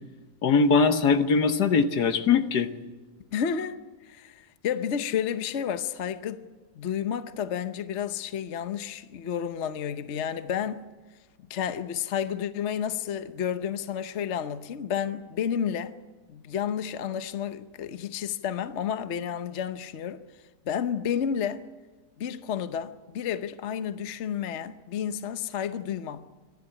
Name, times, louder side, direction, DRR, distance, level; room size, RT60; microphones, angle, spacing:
voice 1, 0.4-2.7, left 5 dB, 70° left, 1.7 m, -21 dB
voice 2, 3.3-6.5 6.7-10.9 11.5-15.9 16.3-20.2 20.6-21.6 22.2-26.2, left 8 dB, 50° left, 1.0 m, -31 dB
25.0 x 12.0 x 9.9 m
omnidirectional pair, 1.8 m